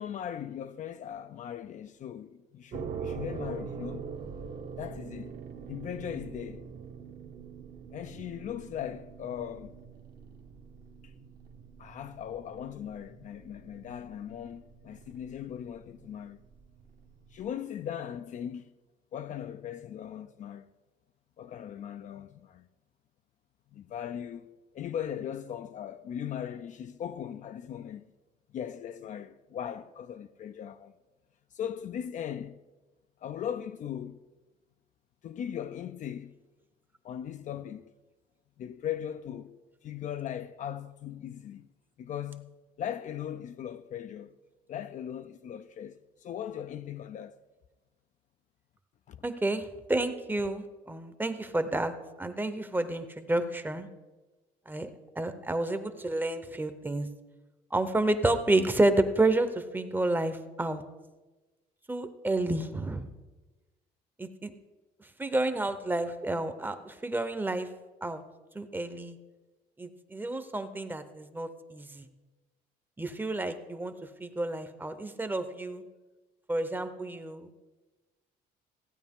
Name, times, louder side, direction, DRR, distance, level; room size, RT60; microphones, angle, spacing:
voice 1, 0.0-4.1 4.8-5.4 5.7-6.7 7.9-9.8 11.8-16.4 17.3-18.7 19.1-20.7 21.4-22.7 23.7-28.0 28.5-30.9 31.5-32.6 33.2-34.2 35.2-36.3 37.0-37.9 38.6-41.7 42.0-42.5 42.8-44.3 44.7-47.4 49.1-49.2, left 9 dB, 45° left, 0.4 m, -39 dB
sound 1, 2.7-17.5, right 6 dB, 60° right, 1.1 m, -44 dB
voice 2, 49.2-51.9 52.2-53.9 54.7-54.9 55.2-57.1 57.7-60.8 61.9-63.1 64.2-64.5 65.2-67.7 68.0-68.2 68.5-69.2 69.8-72.0 73.0-73.9 74.2-75.8 76.5-77.5, right 2 dB, 10° right, 0.7 m, -30 dB
15.5 x 9.0 x 3.6 m
cardioid pair, 110°, 17 cm